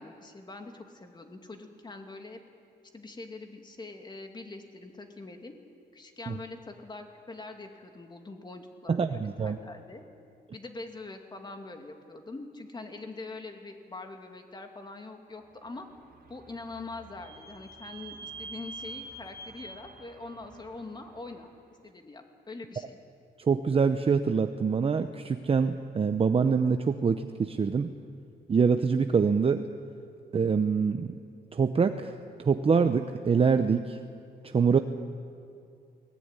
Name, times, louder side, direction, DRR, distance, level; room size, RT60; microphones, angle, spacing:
voice 1, 0.0-2.4 2.9-5.5 5.9-10.0 10.5-15.9 16.3-21.5 21.8-23.0, left 3 dB, 25° left, 4 dB, 2.5 m, -43 dB
voice 2, 8.9-9.6 23.4-27.9 28.5-29.7 30.3-31.1 31.5-32.1 32.4-34.0 34.4-34.8, right 5 dB, 35° right, 8 dB, 0.8 m, -25 dB
Vehicle / Squeak, 15.8-21.4, right 3 dB, 65° right, 2.9 m, -46 dB
22.0 x 19.5 x 9.7 m, 2.4 s
cardioid pair, 125°, 18 cm